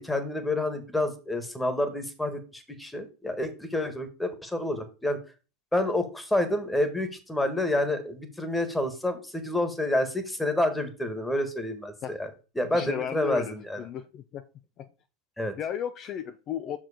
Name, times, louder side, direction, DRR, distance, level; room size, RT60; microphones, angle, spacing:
voice 1, 0.0-5.2 5.7-12.3 12.5-13.8 15.4-15.5, left 1 dB, 5° left, 9 dB, 1.6 m, -28 dB
voice 2, 12.7-14.4 14.8-14.9 15.6-16.8, left 9 dB, 40° left, 9 dB, 0.6 m, -34 dB
6.0 x 4.9 x 5.0 m, 0.33 s
hypercardioid pair, 95°, 0 cm